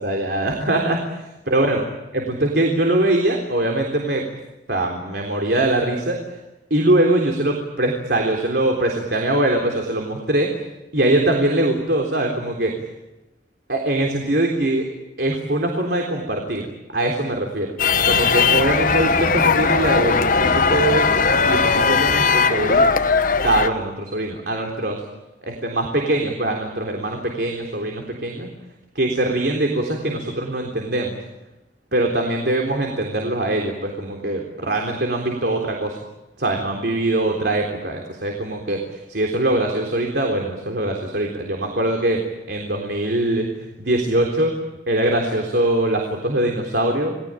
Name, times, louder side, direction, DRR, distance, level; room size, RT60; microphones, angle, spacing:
voice 1, 0.0-1.0 1.5-1.8 2.1-4.3 4.7-6.4 6.7-10.5 10.9-12.7 13.7-14.9 15.2-16.7 16.9-17.7 18.1-21.2 21.4-22.9 23.4-25.0 25.4-28.5 29.0-31.2 31.9-36.0 36.4-42.2 42.5-43.5 43.8-44.5 44.9-47.2, right 1 dB, 65° right, 1 dB, 3.7 m, -22 dB
sound 1, 17.8-23.7, left 5 dB, 50° left, 1.1 m, -18 dB
29.0 x 19.5 x 9.0 m, 1.0 s
head